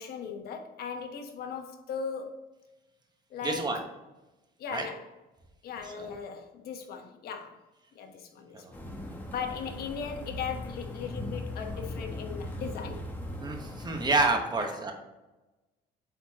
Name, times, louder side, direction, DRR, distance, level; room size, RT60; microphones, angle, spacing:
voice 1, 0.0-2.3 3.3-3.7 4.6-5.1 5.6-7.6 7.9-8.8 9.3-13.1 14.6-14.8, left 6 dB, 65° left, 1.2 m, -38 dB
voice 2, 3.4-3.8 4.7-4.9 6.0-6.1 8.6-8.7 13.4-14.9, right 3 dB, 25° right, 1.3 m, -28 dB
sound 1, 8.7-14.4, left 1 dB, 10° left, 1.2 m, -39 dB
8.3 x 4.3 x 2.9 m
cardioid pair, 110°, 17 cm